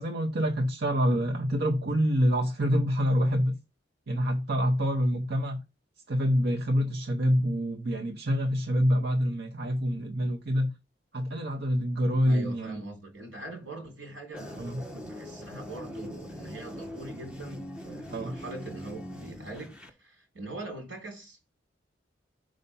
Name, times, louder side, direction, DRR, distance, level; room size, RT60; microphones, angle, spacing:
voice 1, 0.0-3.6 4.1-5.6 6.1-10.7 11.1-12.8 14.6-14.8 18.1-18.3, equal, 60° right, 0.8 m, -26 dB
voice 2, 12.3-14.7 15.0-21.4, right 2 dB, 85° right, 3.5 m, -42 dB
sound 1, 14.3-19.9, left 1 dB, 5° right, 1.0 m, -42 dB
5.6 x 5.0 x 5.4 m
head